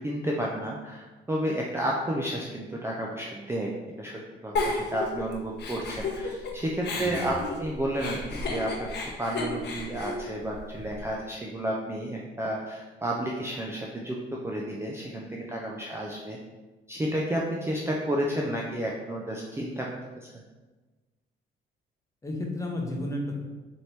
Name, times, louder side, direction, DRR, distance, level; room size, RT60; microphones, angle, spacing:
voice 1, 0.0-14.2 14.4-16.4 16.9-19.9 20.2-20.3, right 1 dB, 10° right, -3 dB, 0.4 m, -31 dB
Giggle, 4.6-6.5 6.8-11.1, left 3 dB, 60° left, 0.8 m, -32 dB
voice 2, 7.0-7.3 22.2-23.4, left 1 dB, 15° left, -1 dB, 0.8 m, -32 dB
4.2 x 2.9 x 3.3 m, 1.2 s
cardioid pair, 90°, 20 cm